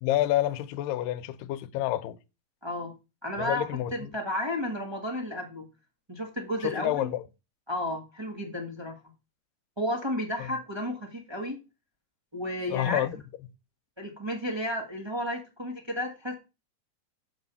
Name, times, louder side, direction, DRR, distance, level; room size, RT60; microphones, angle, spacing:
voice 1, 0.0-2.2 3.4-4.1 6.6-7.2 10.4-10.5 12.7-13.2, left 13 dB, 85° left, 2.3 m, -28 dB
voice 2, 2.6-2.9 3.2-5.7 6.1-7.1 7.7-9.0 9.8-11.6 12.3-13.0 14.0-16.3, left 1 dB, 40° right, 0.3 m, -32 dB
8.0 x 5.3 x 6.9 m
omnidirectional pair, 3.9 m